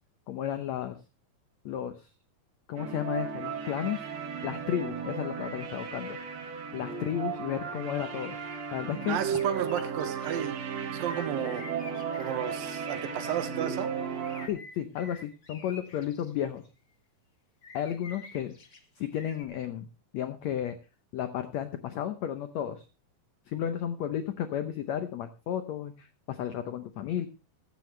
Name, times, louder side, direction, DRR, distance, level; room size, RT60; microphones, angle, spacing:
voice 1, 0.3-1.0 1.6-2.1 2.7-4.0 4.4-6.2 6.7-8.4 8.7-9.2 14.5-16.6 17.7-18.5 19.0-19.9 20.1-20.7 21.1-22.8 23.5-27.3, left 10 dB, 85° left, 9 dB, 1.5 m, -33 dB
sound 1, 2.8-14.5, right 6 dB, 55° right, 2.5 m, -35 dB
sound 2, 8.3-8.6 9.0-10.4 11.0-13.4 14.1-16.6 17.6-18.8 19.1-19.4, left 4 dB, 50° left, 1.0 m, -49 dB
voice 2, 9.1-10.6 10.9-11.6 12.2-13.9, right 10 dB, 75° right, 9 dB, 2.9 m, -32 dB
16.0 x 12.0 x 3.2 m, 0.30 s
omnidirectional pair, 4.2 m